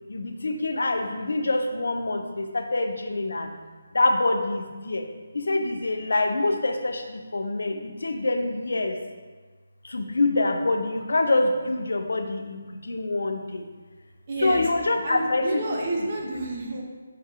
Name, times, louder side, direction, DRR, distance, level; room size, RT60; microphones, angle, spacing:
voice 1, 0.1-3.5 3.9-5.1 5.3-9.0 9.8-13.7 14.4-15.6, left 2 dB, 70° left, 5 dB, 0.4 m, -25 dB
voice 2, 14.3-14.7 15.0-16.8, right 1 dB, 40° right, -1 dB, 0.8 m, -29 dB
5.4 x 3.3 x 2.4 m, 1.4 s
figure-of-eight pair, 150°, 0 cm